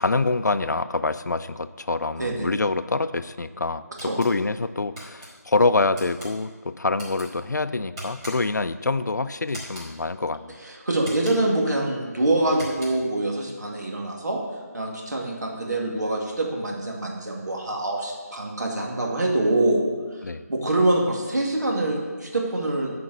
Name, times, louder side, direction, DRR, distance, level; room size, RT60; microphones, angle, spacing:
voice 1, 0.0-10.6 20.2-20.4, left 3 dB, 85° left, 13 dB, 0.5 m, -25 dB
sound 1, 4.0-4.3 5.0-5.3 5.9-6.3 6.9-7.3 8.0-8.6 9.5-9.9 11.0-11.6 12.5-13.1, equal, 15° right, 2.4 m, -40 dB
voice 2, 10.6-14.4 14.7-22.9, right 2 dB, 80° right, -1 dB, 2.3 m, -25 dB
9.5 x 5.1 x 7.9 m, 1.5 s
figure-of-eight pair, 170°, 9 cm